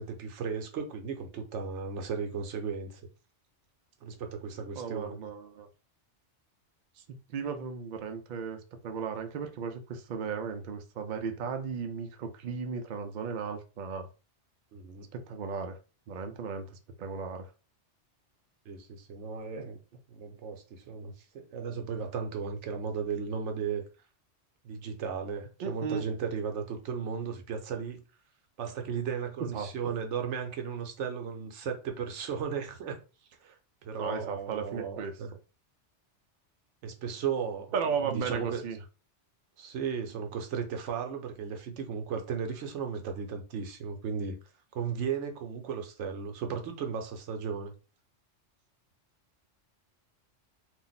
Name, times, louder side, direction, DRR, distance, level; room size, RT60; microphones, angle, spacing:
voice 1, 0.0-3.0 4.0-5.2 14.7-15.1 18.7-19.8 20.1-23.8 24.6-28.0 28.6-33.0 33.4-33.5 33.8-35.3 36.8-37.7 38.0-38.6 39.6-44.4 44.7-47.7, right 6 dB, 75° right, 0.9 m, -35 dB
voice 2, 4.8-5.7 7.0-7.1 7.3-14.1 15.1-15.8 16.1-16.7 17.0-17.5 25.6-26.1 29.5-29.9 34.0-35.1 37.7-38.8, right 6 dB, 60° right, 0.5 m, -35 dB
2.5 x 2.0 x 3.9 m
omnidirectional pair, 1.2 m